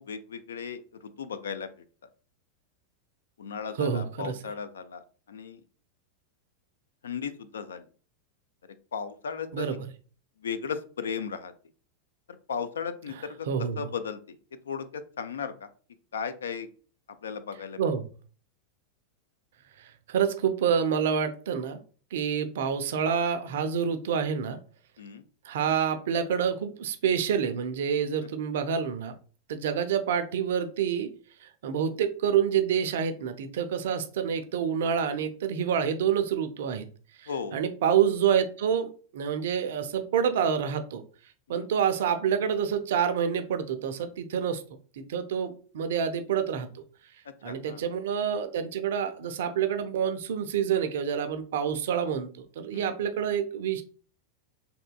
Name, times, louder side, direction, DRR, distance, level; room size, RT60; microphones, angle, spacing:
voice 1, 0.0-1.7 3.4-5.0 5.3-5.6 7.0-7.8 8.9-9.8 10.4-11.5 12.5-13.5 13.8-14.4 14.7-15.7 16.1-16.7 17.2-17.8 25.0-25.2 28.2-28.3 37.3-37.6 41.5-41.7 47.4-47.8 52.7-52.9, left 6 dB, 65° left, 11 dB, 0.3 m, -36 dB
voice 2, 3.8-4.4 9.5-9.9 13.5-13.9 17.8-18.1 20.1-21.8 22.1-24.6 25.5-29.1 29.5-31.1 31.6-36.9 37.2-41.0 41.5-44.6 45.0-46.8 47.4-53.8, right 8 dB, 55° right, 9 dB, 0.4 m, -27 dB
3.5 x 2.7 x 2.2 m, 0.40 s
figure-of-eight pair, 90°, 0 cm